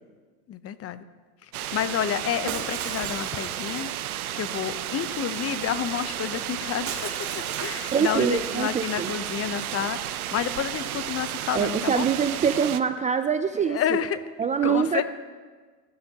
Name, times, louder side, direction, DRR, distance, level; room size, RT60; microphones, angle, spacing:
voice 1, 0.5-1.0 1.4-3.9 4.4-12.1 13.6-14.2 14.6-15.0, left 10 dB, 35° left, 13 dB, 0.9 m, -30 dB
sound 1, 1.5-12.8, right 12 dB, 90° right, 0.8 m, -33 dB
Shatter, 2.5-4.1 6.9-8.7, right 6 dB, 40° right, 2.8 m, -37 dB
voice 2, 7.9-9.1 11.5-14.0 14.4-15.0, right 7 dB, 20° right, 9 dB, 0.4 m, -24 dB
28.0 x 13.0 x 3.0 m, 1.4 s
hypercardioid pair, 100°, 42 cm